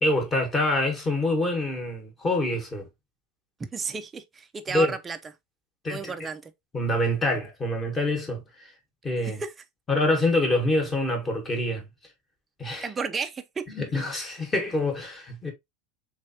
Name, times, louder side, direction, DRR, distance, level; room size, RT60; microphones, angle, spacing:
voice 1, 0.0-2.9 4.7-4.9 5.8-6.1 6.7-8.4 9.0-9.4 9.9-11.8 12.6-12.9 13.7-15.5, left 1 dB, 15° left, 1.1 m, -26 dB
voice 2, 3.6-5.2 5.9-6.5 9.2-9.5 12.8-13.7, right 5 dB, 15° right, 0.4 m, -33 dB
3.4 x 3.2 x 2.6 m
supercardioid pair, 145°, 0 cm